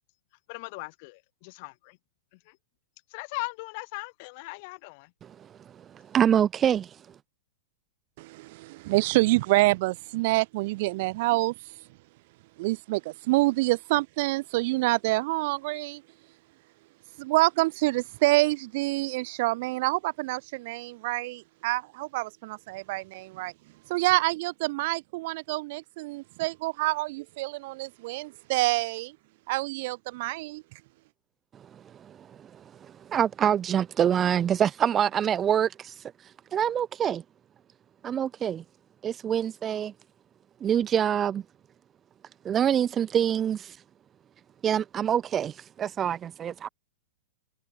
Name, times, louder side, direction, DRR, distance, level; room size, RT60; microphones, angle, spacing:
voice 1, 0.5-2.0 2.5-2.6 3.1-5.1, left 28 dB, 40° left, 4.3 m, -39 dB
voice 2, 6.1-6.9 32.0-32.3 32.8-35.9 36.5-37.2 38.0-38.6 39.0-39.9 40.6-41.4 42.4-43.8 44.6-46.7, right 9 dB, 20° right, 2.0 m, -25 dB
voice 3, 8.2-11.5 12.6-16.0 17.2-23.5 23.9-29.2 29.5-30.6, right 21 dB, 45° right, 2.2 m, -27 dB
supercardioid pair, 160°, 0 cm